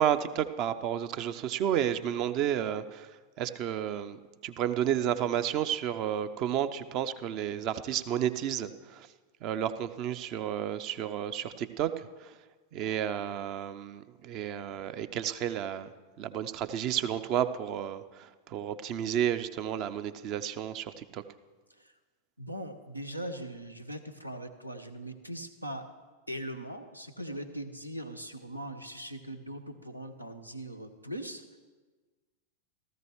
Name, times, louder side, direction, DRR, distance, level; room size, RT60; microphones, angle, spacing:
voice 1, 0.0-3.1 3.4-4.2 4.4-9.1 9.4-12.3 12.7-15.9 16.2-21.2, right 10 dB, 40° right, 12 dB, 0.6 m, -31 dB
voice 2, 22.4-25.8 26.3-31.6, right 1 dB, 90° right, 8 dB, 0.9 m, -40 dB
16.5 x 14.0 x 3.1 m, 1.3 s
figure-of-eight pair, 90°, 0 cm